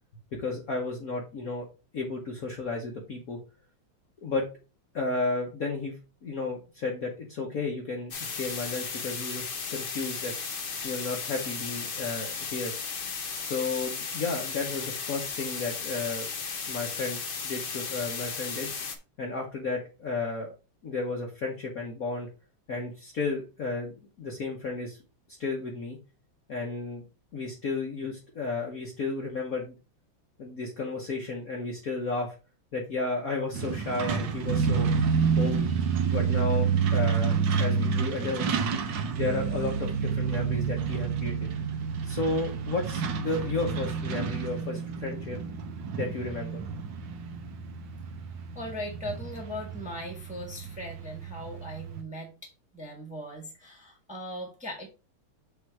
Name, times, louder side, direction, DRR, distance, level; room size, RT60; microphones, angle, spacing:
voice 1, 0.4-1.6 1.9-3.4 4.2-4.4 4.9-5.9 6.2-9.4 9.7-10.3 10.8-12.7 13.4-16.3 16.7-18.7 19.2-20.5 20.8-22.3 22.7-23.9 24.2-25.0 25.4-26.0 26.5-27.0 27.3-29.7 30.4-32.3 32.7-34.9 35.3-35.6 36.1-38.5 39.1-41.5 42.0-45.4 45.9-46.6, left 3 dB, 50° left, -1 dB, 1.4 m, -33 dB
sound 1, 8.1-19.0, left 5 dB, 80° left, 0.5 m, -35 dB
Truck, 33.5-52.0, right 6 dB, 65° right, 1.5 m, -29 dB
voice 2, 48.5-54.9, equal, 5° right, -1 dB, 1.2 m, -39 dB
7.0 x 3.2 x 4.7 m, 0.32 s
omnidirectional pair, 2.2 m